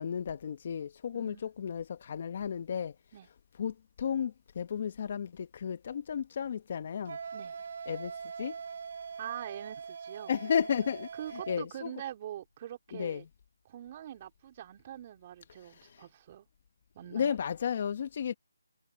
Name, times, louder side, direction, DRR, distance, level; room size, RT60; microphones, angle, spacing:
voice 1, 0.0-2.9 3.6-7.2 7.9-8.1 8.4-8.5 10.3-11.1 11.5-11.9 12.9-13.2 17.1-18.3, left 7 dB, 35° left, 1.3 m, -33 dB
Wind instrument woodwind instrument, 7.0-11.6, right 6 dB, 45° right, 6.0 m, -42 dB
voice 2, 9.2-10.3 11.2-13.3 13.6-16.5 16.9-17.4, right 11 dB, 25° right, 3.9 m, -44 dB
figure-of-eight pair, 165°, 0 cm